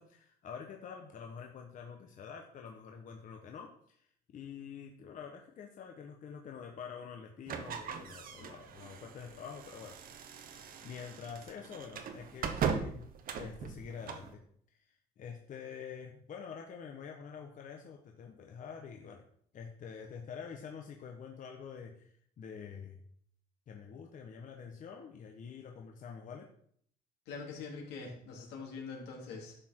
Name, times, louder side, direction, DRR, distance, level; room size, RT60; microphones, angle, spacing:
voice 1, 0.0-10.5 10.8-13.1 13.4-14.4 14.8-19.2 19.5-23.0 23.7-26.5, left 6 dB, 50° left, 2 dB, 1.2 m, -47 dB
sound 1, 7.5-14.3, right 6 dB, 55° right, 1.3 m, -39 dB
voice 2, 27.3-29.6, left 4 dB, 85° left, -1 dB, 3.4 m, -44 dB
11.5 x 6.3 x 4.6 m, 0.64 s
cardioid pair, 110°, 17 cm